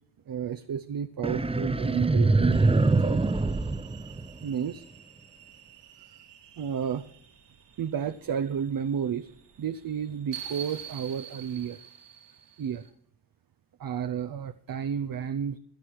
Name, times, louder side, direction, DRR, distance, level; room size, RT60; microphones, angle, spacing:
voice 1, 0.3-3.4 4.4-4.8 6.1-6.2 6.6-7.1 7.8-9.3 9.6-11.8 12.6-12.8 13.8-15.6, right 8 dB, 50° right, 10 dB, 0.6 m, -32 dB
sound 1, 1.2-4.7, right 3 dB, 15° right, 0.6 m, -24 dB
sound 2, 2.5-12.9, right 8 dB, 70° right, 2.1 m, -48 dB
16.5 x 11.5 x 4.6 m, 0.65 s
wide cardioid pair, 130°, 43 cm